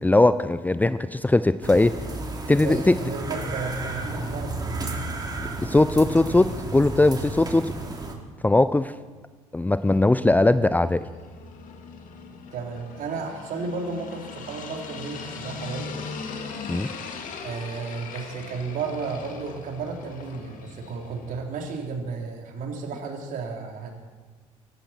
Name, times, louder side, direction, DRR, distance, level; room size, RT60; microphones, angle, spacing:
voice 1, 0.0-2.0 2.5-3.0 5.6-7.7 8.4-8.9 9.5-11.0 16.7-16.9, left 2 dB, 10° left, 14 dB, 0.6 m, -20 dB
sound 1, 1.6-8.1, right 2 dB, 25° right, 3.3 m, -32 dB
voice 2, 2.6-4.7 12.5-16.0 17.4-23.9, right 4 dB, 55° right, 1 dB, 3.7 m, -33 dB
sound 2, 9.9-21.4, left 5 dB, 50° left, 2.5 m, -40 dB
24.0 x 12.5 x 4.5 m, 1.4 s
figure-of-eight pair, 55°, 17 cm